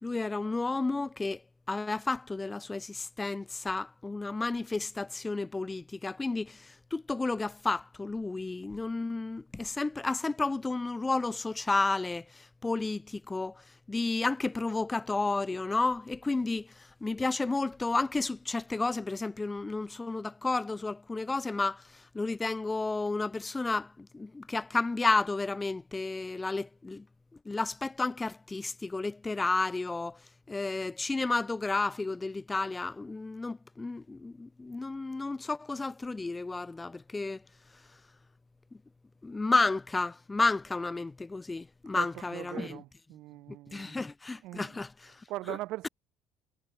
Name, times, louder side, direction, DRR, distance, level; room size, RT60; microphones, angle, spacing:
voice 1, 0.0-1.4 1.7-27.0 27.4-30.2 30.5-37.4 39.2-42.8 43.7-45.2 45.5-45.6, left 3 dB, 20° left, 3.1 m, -32 dB
voice 2, 41.9-44.0 44.4-44.8 45.0-45.9, right 18 dB, 70° right, 2.8 m, -41 dB
supercardioid pair, 75°, 0 cm